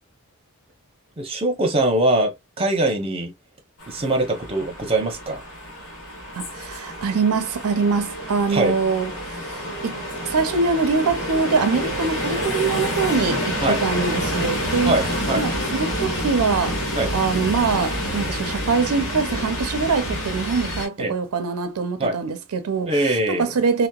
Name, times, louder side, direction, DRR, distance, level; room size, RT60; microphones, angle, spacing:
voice 1, 1.2-3.3 3.9-5.4 8.5-8.8 13.6-13.8 14.8-15.4 16.9-17.1 21.0-21.1 22.0-22.2 22.8-23.5, right 1 dB, 25° right, 0.6 m, -22 dB
sound 1, 3.8-20.9, equal, 65° left, 1.2 m, -28 dB
voice 2, 6.3-10.0 10.2-14.9 15.4-16.8 17.1-23.9, right 4 dB, 85° right, 0.5 m, -23 dB
2.8 x 2.1 x 2.2 m
head